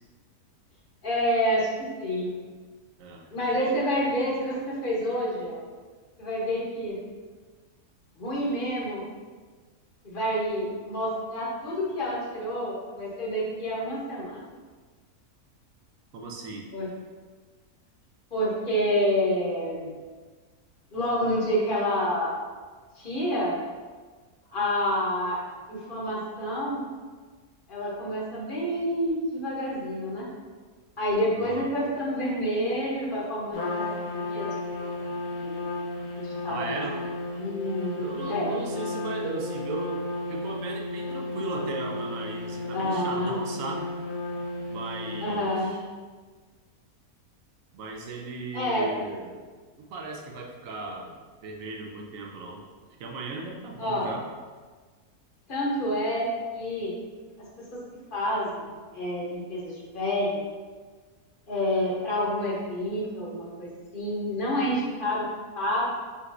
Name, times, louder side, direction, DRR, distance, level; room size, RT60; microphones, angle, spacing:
voice 1, 1.0-2.3 3.3-5.6 6.2-7.0 8.2-9.0 10.0-14.4 16.7-16.9 18.3-19.9 20.9-22.3 23.0-23.6 24.5-25.4 25.7-26.8 27.7-30.3 31.0-33.8 34.1-34.7 35.4-35.6 36.1-36.8 37.4-38.5 42.7-43.4 45.2-45.8 48.5-48.9 53.8-54.1 55.5-56.3 56.5-56.9 57.7-57.8 58.1-58.7 58.9-60.3 61.5-65.2 65.5-65.8, equal, 40° left, -5 dB, 0.9 m, -28 dB
voice 2, 16.1-16.7 31.3-31.7 36.4-37.1 38.0-43.9 44.7-45.8 47.7-49.4 49.8-51.2 51.4-52.6 53.0-54.3, right 3 dB, 65° right, 1 dB, 1.0 m, -36 dB
Trumpet, 33.5-45.7, left 2 dB, 85° left, 1.4 m, -33 dB
5.6 x 3.0 x 2.5 m, 1.5 s
omnidirectional pair, 1.6 m